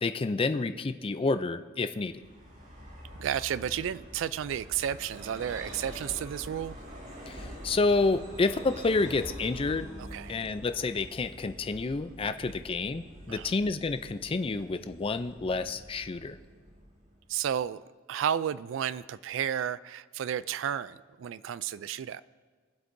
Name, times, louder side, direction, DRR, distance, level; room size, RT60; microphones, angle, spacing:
voice 1, 0.0-2.2 7.3-9.9 10.3-16.4, left 3 dB, 30° left, 11 dB, 0.4 m, -29 dB
Vehicle, 2.1-17.5, equal, 45° right, 2.8 m, -46 dB
voice 2, 3.2-6.8 10.0-10.3 12.3-12.4 13.3-13.5 17.3-17.8 18.1-22.2, right 9 dB, 75° right, 17 dB, 0.3 m, -32 dB
21.5 x 7.9 x 2.6 m, 1.5 s
head